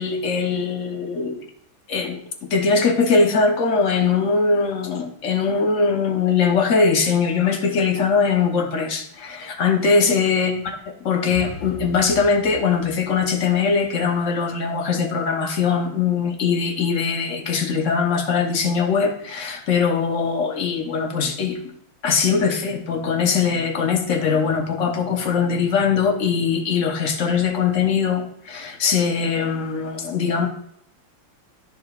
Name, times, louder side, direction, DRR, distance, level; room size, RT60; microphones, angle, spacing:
voice 1, 0.0-1.4 1.9-2.2 2.5-10.5 11.0-21.6 22.0-30.5, left 5 dB, 50° left, 3 dB, 1.0 m, -21 dB
sound 1, 11.3-14.5, left 3 dB, 15° left, 2.8 m, -39 dB
14.0 x 5.0 x 2.4 m, 0.69 s
omnidirectional pair, 2.3 m